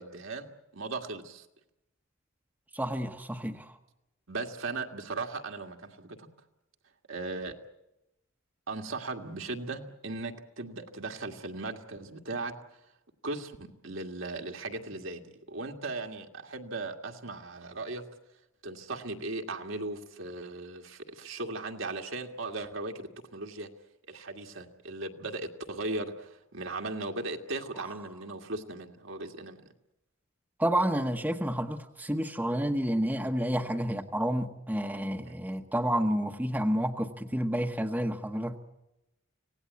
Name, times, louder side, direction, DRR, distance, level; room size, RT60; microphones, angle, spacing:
voice 1, 0.0-1.5 4.3-6.3 7.1-7.6 8.7-12.5 13.2-18.0 18.6-23.7 24.1-29.6 34.9-35.3, right 2 dB, 70° right, 3 dB, 1.9 m, -38 dB
voice 2, 2.7-3.7 30.6-38.6, equal, 10° right, 4 dB, 1.0 m, -30 dB
26.0 x 18.0 x 8.2 m, 0.91 s
head